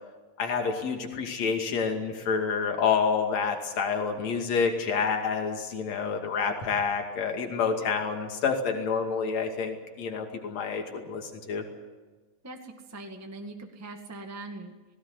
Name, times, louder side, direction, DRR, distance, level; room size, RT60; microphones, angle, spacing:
voice 1, 0.4-11.6, left 5 dB, 50° left, 3 dB, 3.4 m, -28 dB
voice 2, 12.4-14.7, right 2 dB, 10° right, 3 dB, 0.6 m, -41 dB
18.5 x 18.0 x 9.7 m, 1.3 s
omnidirectional pair, 4.1 m